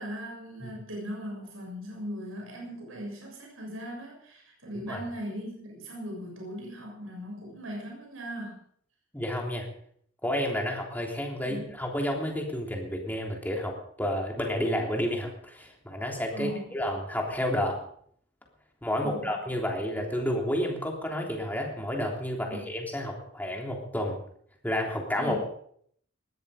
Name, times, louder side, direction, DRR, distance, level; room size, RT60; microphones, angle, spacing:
voice 1, 0.0-8.6 11.5-11.6 16.3-16.7 19.0-19.3 22.5-22.6 25.1-25.4, equal, 80° right, -1 dB, 7.0 m, -39 dB
voice 2, 9.1-9.7 10.2-17.8 18.8-24.2 24.6-25.5, left 1 dB, 10° left, 0 dB, 3.4 m, -30 dB
20.0 x 13.5 x 5.1 m, 0.64 s
head